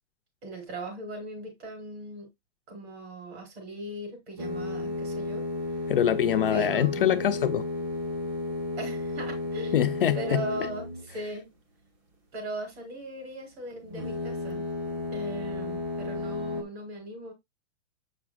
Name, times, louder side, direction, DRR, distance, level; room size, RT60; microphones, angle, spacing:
voice 1, 0.4-2.3 2.7-5.5 6.5-7.1 8.8-9.8 10.1-11.6 12.3-14.7 15.1-17.3, right 1 dB, 50° right, 4.6 m, -39 dB
sound 1, 4.4-11.2 13.9-16.6, left 2 dB, 30° right, 1.6 m, -33 dB
voice 2, 5.9-7.6 9.7-10.4, left 10 dB, 45° left, 0.4 m, -24 dB
7.7 x 5.9 x 2.3 m
hypercardioid pair, 170°, 40 cm